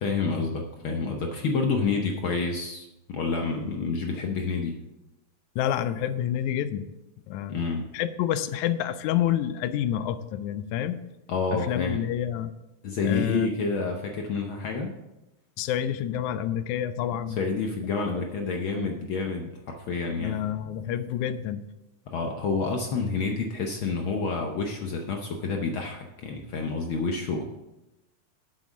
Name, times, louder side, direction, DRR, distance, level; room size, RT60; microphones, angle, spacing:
voice 1, 0.0-4.7 7.5-7.8 11.3-12.0 12.8-14.9 17.4-20.4 22.1-27.4, left 4 dB, 70° left, 3 dB, 1.2 m, -29 dB
voice 2, 5.6-6.9 7.3-7.6 7.9-11.0 11.5-12.5 13.0-13.5 15.6-17.4 20.2-21.6, left 10 dB, 90° left, 12 dB, 2.0 m, -28 dB
7.8 x 7.6 x 6.2 m, 0.97 s
omnidirectional pair, 3.3 m